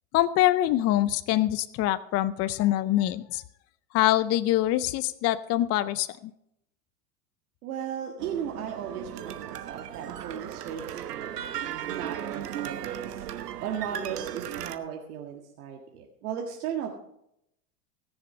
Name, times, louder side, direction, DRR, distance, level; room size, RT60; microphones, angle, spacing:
voice 1, 0.1-3.4 3.9-6.3, left 14 dB, 35° left, 15 dB, 0.5 m, -24 dB
voice 2, 7.6-11.4 11.8-13.2 13.6-16.9, right 8 dB, 70° right, 1 dB, 1.9 m, -36 dB
sound 1, 8.2-14.8, right 10 dB, 85° right, 1.1 m, -36 dB
19.0 x 7.0 x 5.5 m, 0.79 s
hypercardioid pair, 100°, 46 cm